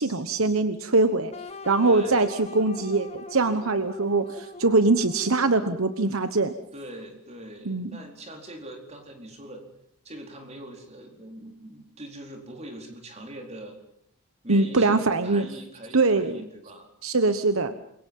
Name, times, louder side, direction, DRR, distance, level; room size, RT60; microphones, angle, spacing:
voice 1, 0.0-1.3 1.7-6.5 7.7-7.9 14.5-15.4 15.9-16.4 17.0-17.7, right 3 dB, 65° right, 10 dB, 1.2 m, -22 dB
sound 1, 1.3-6.3, left 3 dB, 30° left, 1.3 m, -42 dB
voice 2, 1.8-2.3 6.7-9.6 10.0-13.8 14.4-16.9, right 1 dB, 30° right, 3 dB, 4.4 m, -42 dB
28.0 x 23.5 x 5.5 m, 0.71 s
head